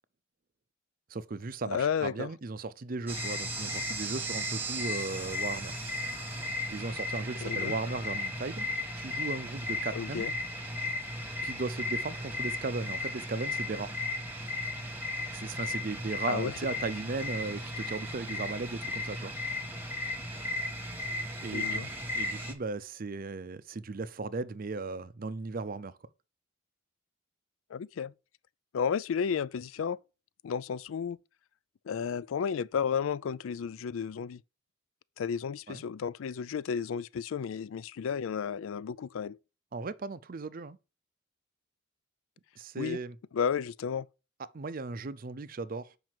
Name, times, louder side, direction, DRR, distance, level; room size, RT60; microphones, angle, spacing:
voice 1, 1.1-5.8 6.7-8.7 9.0-10.3 11.4-13.9 15.3-19.3 21.4-21.9 22.2-25.9 35.7-35.8 39.7-40.8 42.6-43.1 44.5-45.9, right 3 dB, 45° right, 0.5 m, -36 dB
voice 2, 1.6-2.3 7.4-7.7 9.9-10.3 16.3-16.5 21.5-21.9 27.7-28.1 28.7-30.0 30.4-31.2 31.9-34.4 35.2-39.4 42.8-43.0 43.3-44.1, left 7 dB, 75° left, 0.4 m, -32 dB
sound 1, 3.1-22.5, left 2 dB, 10° right, 1.3 m, -35 dB
7.6 x 5.3 x 4.6 m
head